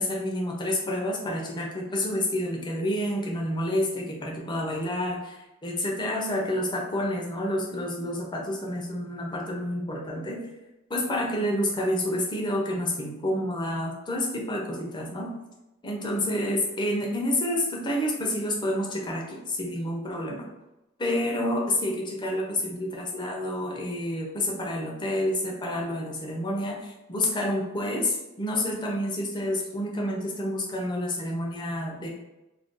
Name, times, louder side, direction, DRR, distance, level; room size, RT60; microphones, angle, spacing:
voice 1, 0.0-10.4 10.9-15.3 15.8-20.5 21.0-32.1, left 1 dB, 20° left, -1 dB, 0.5 m, -29 dB
2.5 x 2.2 x 3.6 m, 0.97 s
head